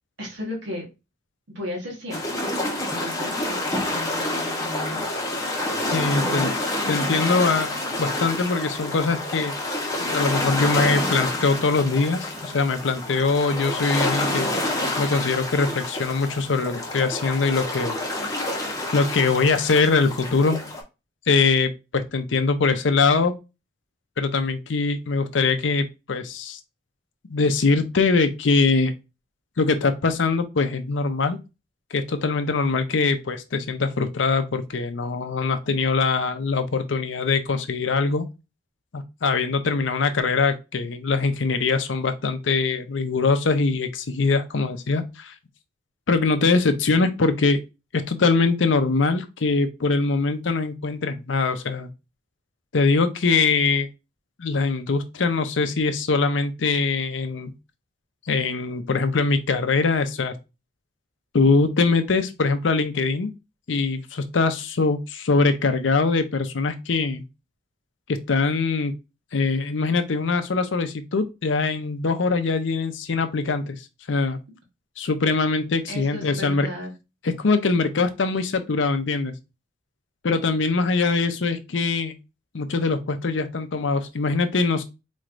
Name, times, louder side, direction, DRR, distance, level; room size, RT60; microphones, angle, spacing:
voice 1, 0.2-0.9 1.5-2.4 2.8-5.1 6.1-6.4 75.9-76.9, left 1 dB, 75° right, 1.3 m, -35 dB
sound 1, 2.1-20.8, left 1 dB, 20° left, 0.9 m, -28 dB
voice 2, 5.9-6.5 6.9-7.7 8.0-9.6 10.0-14.5 15.0-18.4 18.9-20.6 21.3-23.3 24.2-26.6 27.3-28.9 29.6-31.4 31.9-38.3 38.9-45.3 46.1-47.6 47.9-51.9 52.7-53.9 54.4-57.5 58.3-60.4 61.3-63.3 63.7-67.2 68.1-68.9 69.3-73.8 74.1-74.4 75.0-76.7 77.2-79.3 80.2-82.1 82.5-84.8, left 4 dB, 80° left, 0.6 m, -22 dB
4.3 x 3.1 x 2.5 m
head